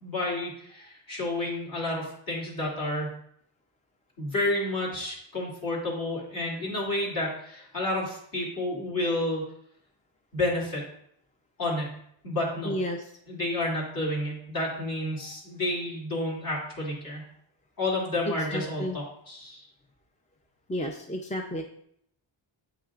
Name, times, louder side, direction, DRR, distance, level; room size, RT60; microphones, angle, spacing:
voice 1, 0.0-3.2 4.2-9.4 10.3-10.9 11.6-12.0 12.2-12.7 13.3-17.2 17.8-19.6, left 1 dB, 45° left, -4 dB, 2.7 m, -30 dB
voice 2, 12.6-13.0 18.3-19.0 20.7-21.6, equal, 15° left, 2 dB, 0.5 m, -31 dB
8.6 x 6.0 x 2.5 m, 0.70 s
wide cardioid pair, 115°, 48 cm